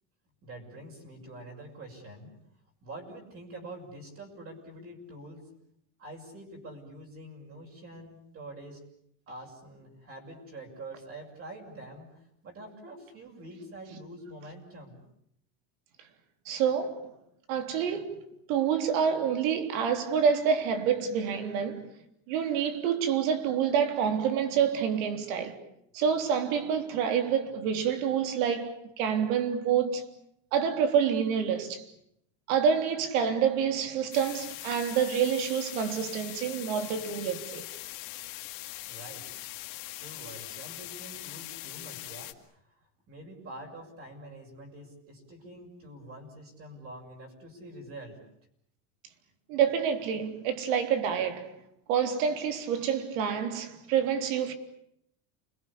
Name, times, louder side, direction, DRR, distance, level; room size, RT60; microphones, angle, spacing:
voice 1, 0.4-2.3 2.8-5.5 6.0-8.8 9.3-15.0 38.9-39.3 39.9-42.7 43.1-48.2, right 1 dB, 35° right, 6.6 m, -46 dB
voice 2, 16.5-17.1 17.5-18.2 18.5-21.9 22.3-25.6 25.9-30.0 30.5-31.9 32.5-37.7 49.5-51.5 51.9-54.5, right 7 dB, 80° right, 3.6 m, -27 dB
sound 1, 34.1-42.3, left 18 dB, 55° left, 2.3 m, -41 dB
29.5 x 22.0 x 8.6 m
cardioid pair, 160°, 40 cm